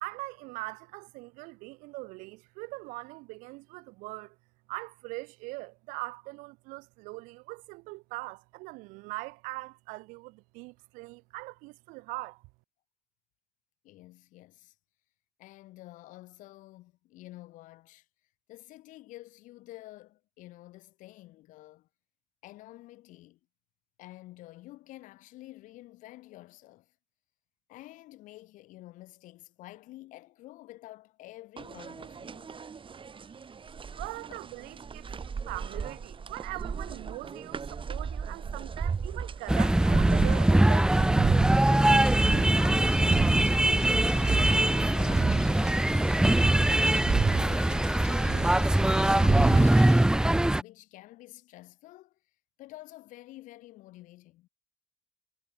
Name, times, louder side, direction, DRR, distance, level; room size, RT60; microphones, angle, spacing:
voice 1, 0.0-4.4 4.7-12.4 34.0-40.7, right 25 dB, 85° right, 1.8 m, -41 dB
voice 2, 13.8-14.7 15.4-18.1 18.5-21.9 22.4-23.4 24.0-26.9 27.7-32.6 41.7-43.4 44.1-45.8 47.1-52.2 52.6-54.5, left 17 dB, 75° left, 1.4 m, -49 dB
sound 1, 31.6-49.7, right 6 dB, 40° right, 1.0 m, -34 dB
sound 2, 39.5-50.6, right 1 dB, 5° right, 0.3 m, -22 dB
sound 3, 42.0-50.0, left 7 dB, 55° left, 4.6 m, -47 dB
hypercardioid pair, 45°, 13 cm